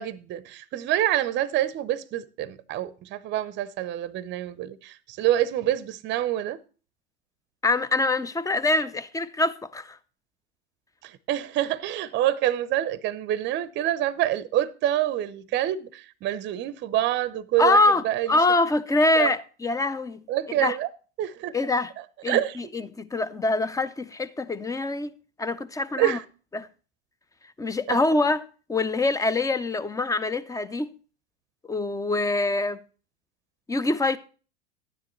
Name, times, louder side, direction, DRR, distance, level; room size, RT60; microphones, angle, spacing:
voice 1, 0.0-6.6 11.0-18.4 19.2-19.3 20.3-20.9 21.2-21.5 22.3-22.7 26.0-26.2 27.9-28.0, right 13 dB, 30° right, 0.7 m, -27 dB
voice 2, 7.6-10.0 17.6-20.2 20.6-20.8 21.5-21.9 22.2-25.1 25.4-26.2 26.5-26.7 27.6-28.4 28.7-30.9 31.7-32.8 33.7-34.2, left 2 dB, 10° left, 0.5 m, -24 dB
12.5 x 9.7 x 3.1 m
hypercardioid pair, 90°, 34 cm